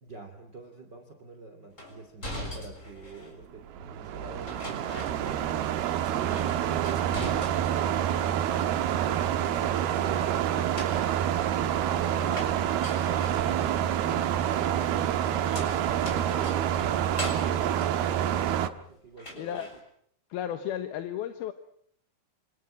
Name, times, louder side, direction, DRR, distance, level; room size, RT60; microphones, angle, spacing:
voice 1, 0.0-5.5 13.4-19.7, right 5 dB, 30° right, 6 dB, 3.0 m, -45 dB
sound 1, 1.8-3.4 4.5-5.8 6.0-7.9 8.3-9.1 10.5-18.8 19.2-19.8, left 1 dB, 20° left, 7.3 m, -42 dB
sound 2, 3.6-18.7, right 10 dB, 85° right, 3.3 m, -27 dB
voice 2, 12.2-12.5 19.3-19.7 20.3-21.5, left 10 dB, 80° left, 10 dB, 3.2 m, -34 dB
28.0 x 27.5 x 6.3 m, 0.66 s
omnidirectional pair, 4.4 m